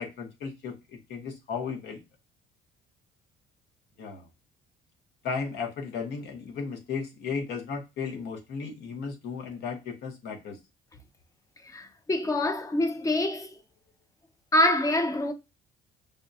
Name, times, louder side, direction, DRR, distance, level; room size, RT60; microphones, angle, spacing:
voice 1, 0.0-2.0 4.0-4.3 5.2-10.6, left 5 dB, 80° left, 1.1 m, -35 dB
voice 2, 11.6-13.5 14.5-15.3, left 1 dB, 20° left, 0.5 m, -25 dB
5.3 x 2.2 x 2.6 m
cardioid pair, 110°, 17 cm